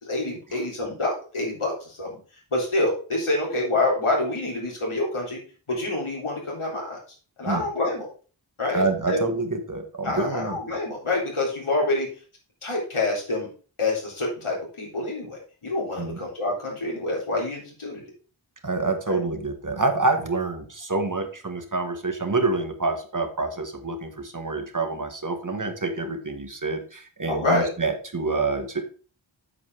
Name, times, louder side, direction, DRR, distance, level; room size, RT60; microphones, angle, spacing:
voice 1, 0.0-2.2 2.5-5.4 5.7-7.0 7.4-8.1 8.6-9.2 10.0-12.1 12.6-13.5 13.8-18.0 19.1-19.2 27.3-27.7, left 2 dB, 80° left, -2 dB, 3.8 m, -27 dB
voice 2, 8.7-10.6 16.0-16.2 18.6-28.8, right 3 dB, 40° right, 6 dB, 1.6 m, -27 dB
8.5 x 5.4 x 4.8 m, 0.38 s
wide cardioid pair, 50°, 49 cm